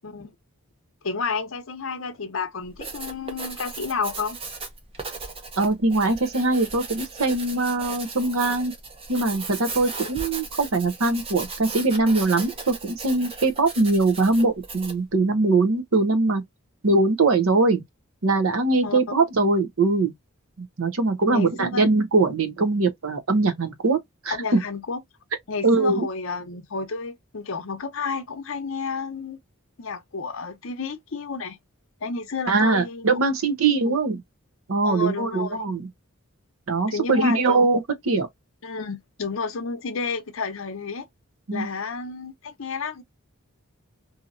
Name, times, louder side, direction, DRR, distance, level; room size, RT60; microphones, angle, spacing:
voice 1, 1.0-4.4 18.8-19.0 21.3-21.9 24.3-25.0 25.5-29.4 29.8-31.6 32.0-33.1 33.8-34.0 34.8-35.6 36.9-37.8 38.6-41.1 41.5-43.0, left 4 dB, 65° left, 0.7 m, -31 dB
Writing, 2.6-15.1, right 4 dB, 25° right, 0.7 m, -37 dB
voice 2, 5.6-8.7 9.1-16.4 16.8-17.8 18.2-20.1 20.6-24.0 24.2-24.6 25.6-26.1 32.5-34.2 34.7-35.9 36.7-38.3 41.5-41.7, right 3 dB, 70° right, 0.8 m, -22 dB
2.8 x 2.7 x 2.5 m
head